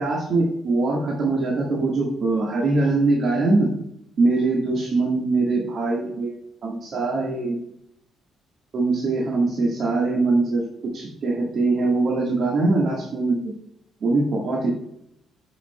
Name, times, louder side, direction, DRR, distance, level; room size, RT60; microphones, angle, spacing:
voice 1, 0.0-3.7 4.2-6.3 6.6-7.6 8.7-10.6 10.9-13.5 14.0-14.7, right 3 dB, 60° right, -2 dB, 1.6 m, -22 dB
8.2 x 5.7 x 2.2 m, 0.76 s
cardioid pair, 90°, 0 cm